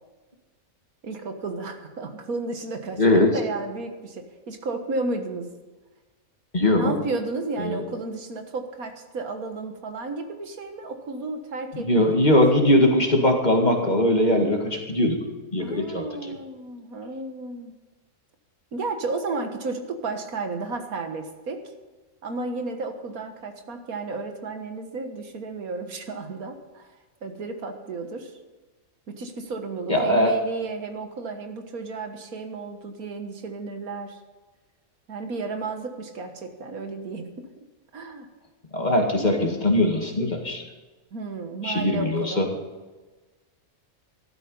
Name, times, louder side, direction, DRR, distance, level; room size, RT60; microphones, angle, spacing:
voice 1, 1.0-5.5 6.7-12.2 15.6-17.7 18.7-21.6 22.2-28.4 29.1-34.2 35.1-37.5 37.9-38.3 41.1-42.4, right 3 dB, 85° right, 6 dB, 1.9 m, -33 dB
voice 2, 3.0-3.3 6.5-6.9 7.6-7.8 11.9-15.2 15.5-16.0 29.9-30.3 38.7-40.6 41.6-42.5, left 1 dB, 30° left, 2 dB, 2.1 m, -20 dB
14.0 x 12.5 x 5.5 m, 1.3 s
omnidirectional pair, 1.5 m